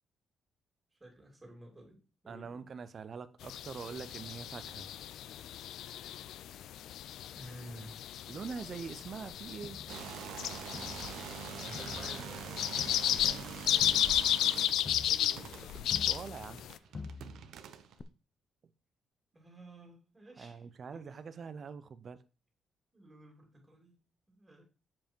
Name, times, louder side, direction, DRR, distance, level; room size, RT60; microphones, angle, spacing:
voice 1, 0.9-2.7 6.5-6.8 7.3-8.1 11.4-12.8 13.6-14.0 15.1-15.8 19.3-20.7 20.9-21.0 22.9-24.0 24.3-24.6, right 1 dB, 15° right, 2.7 m, -52 dB
voice 2, 2.3-4.9 8.3-9.8 13.1-13.4 15.7-16.6 20.4-22.2, right 6 dB, 40° right, 0.5 m, -44 dB
sound 1, 3.4-16.8, left 11 dB, 85° left, 0.4 m, -34 dB
Crowd, 9.6-11.4 11.7-16.7 16.9-17.6 18.0-18.1, left 4 dB, 30° left, 0.5 m, -48 dB
sound 2, 9.9-17.9, right 8 dB, 80° right, 0.7 m, -45 dB
7.2 x 5.2 x 4.5 m
cardioid pair, 150°, 0 cm